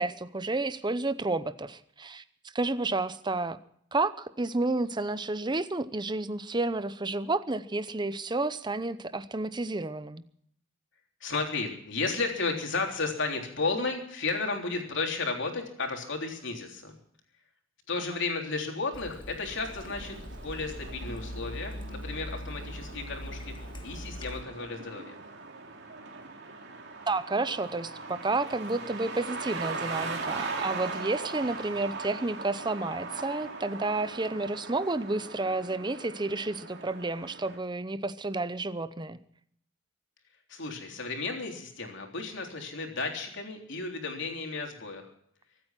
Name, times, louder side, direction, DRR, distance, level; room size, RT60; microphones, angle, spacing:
voice 1, 0.0-2.2 2.5-3.6 3.9-10.2 27.1-39.2, right 2 dB, 20° right, 13 dB, 0.7 m, -31 dB
voice 2, 11.2-16.9 17.9-25.2 40.5-45.0, left 3 dB, 60° left, 2 dB, 3.6 m, -33 dB
Water tap faucet / Sink (filling or washing), 18.9-24.4, equal, 25° left, 1.6 m, -41 dB
sound 1, 19.5-37.6, right 4 dB, 55° right, 3.1 m, -40 dB
24.5 x 9.0 x 5.9 m, 0.68 s
head